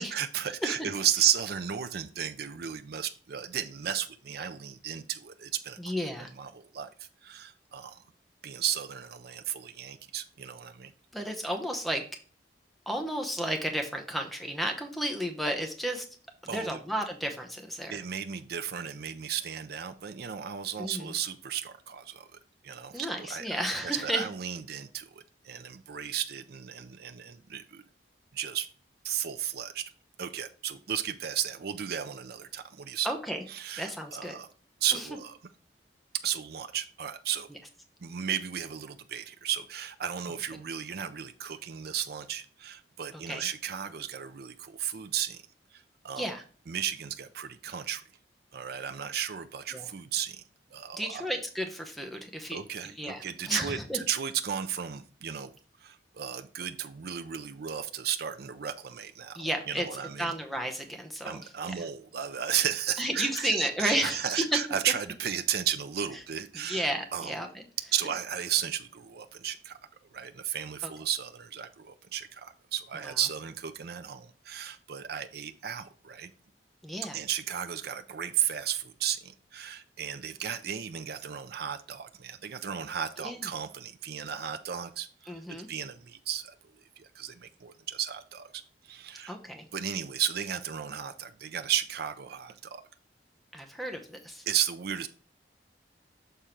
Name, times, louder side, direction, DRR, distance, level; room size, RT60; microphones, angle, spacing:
voice 1, 0.0-5.8 6.2-8.0 8.4-10.9 16.5-16.8 17.9-27.8 28.3-28.7 29.0-29.8 30.2-33.1 33.5-34.5 34.8-35.4 36.2-37.5 38.0-45.4 45.7-46.3 46.7-48.0 48.5-50.4 50.7-51.2 52.5-55.5 55.8-60.3 61.2-66.9 67.1-67.4 67.9-69.8 70.1-76.3 77.1-86.5 87.0-89.3 89.7-92.8 94.5-95.1, right 9 dB, 60° right, 9 dB, 0.5 m, -34 dB
voice 2, 5.8-6.3 11.1-12.0 12.9-16.1 16.4-18.0 20.8-21.1 22.9-24.2 33.0-33.4 33.8-34.3 34.9-35.0 37.5-37.6 43.1-43.5 46.2-46.4 49.7-49.9 50.9-54.0 59.3-59.9 60.2-61.7 63.0-64.6 66.6-67.7 70.8-70.9 73.0-73.2 76.8-77.2 83.2-83.5 85.3-85.7 89.3-89.6 93.5-94.4, equal, ahead, 3 dB, 0.8 m, -33 dB
6.8 x 3.7 x 4.4 m, 0.39 s
head